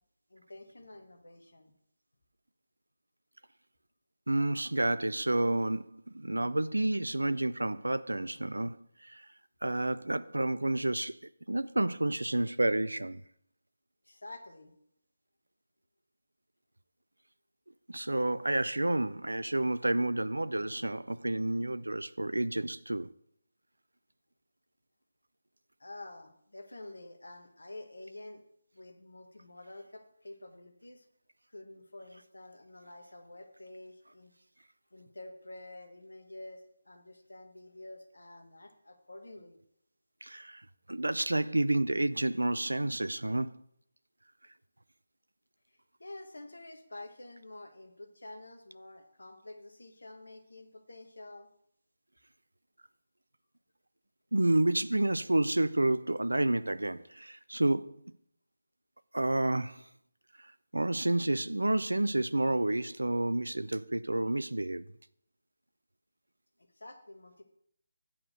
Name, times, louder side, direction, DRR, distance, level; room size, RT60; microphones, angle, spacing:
voice 1, 0.3-1.7 14.0-14.7 25.8-28.4 28.7-31.1 31.5-34.3 34.9-39.6 45.7-51.5 66.6-67.4, left 2 dB, 70° left, 1.3 m, -49 dB
voice 2, 4.3-9.3 9.6-11.2 11.5-13.2 17.9-23.1 40.2-43.6 54.3-58.0 59.1-59.9 60.7-64.9, right 1 dB, 75° right, 0.4 m, -30 dB
8.7 x 4.8 x 6.4 m
figure-of-eight pair, 150°, 0 cm